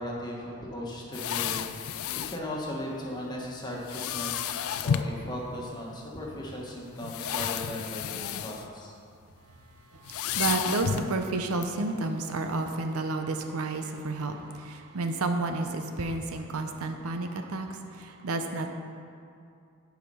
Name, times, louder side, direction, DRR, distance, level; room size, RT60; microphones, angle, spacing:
voice 1, 0.0-2.0 2.3-4.6 4.8-8.9, left 1 dB, 20° left, -3 dB, 1.3 m, -37 dB
sound 1, 1.1-2.4 3.9-5.2 6.1-6.2 6.9-8.7 9.0-9.2 10.0-11.2 11.6-11.7, left 8 dB, 75° left, 0.4 m, -31 dB
voice 2, 9.9-18.7, right 3 dB, 85° right, 5 dB, 0.7 m, -31 dB
10.5 x 4.9 x 5.5 m, 2.5 s
head